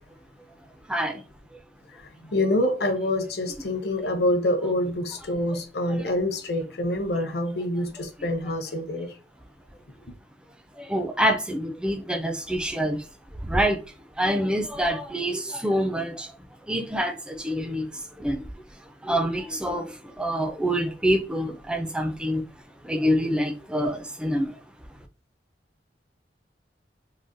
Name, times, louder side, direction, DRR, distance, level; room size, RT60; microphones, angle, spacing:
voice 1, 0.9-1.2 10.8-13.0 13.4-13.8 14.2-16.3 16.7-18.4 19.0-22.4 22.8-24.6, equal, 5° right, 0.3 m, -26 dB
voice 2, 2.2-9.1, left 1 dB, 65° left, 0.7 m, -26 dB
3.8 x 2.1 x 2.5 m
head